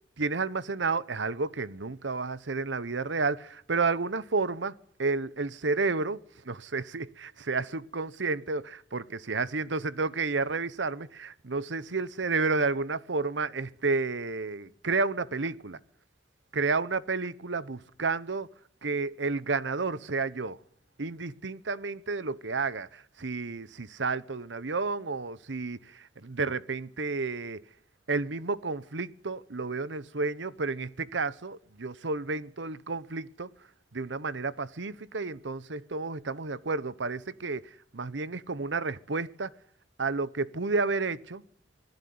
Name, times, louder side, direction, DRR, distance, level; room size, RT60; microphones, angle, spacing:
voice 1, 0.2-4.7 5.0-15.8 16.5-18.5 18.8-20.6 21.0-27.6 28.1-33.5 33.9-37.6 37.9-39.5 40.0-41.4, right 4 dB, 85° right, 1.0 m, -31 dB
26.0 x 16.5 x 9.6 m
head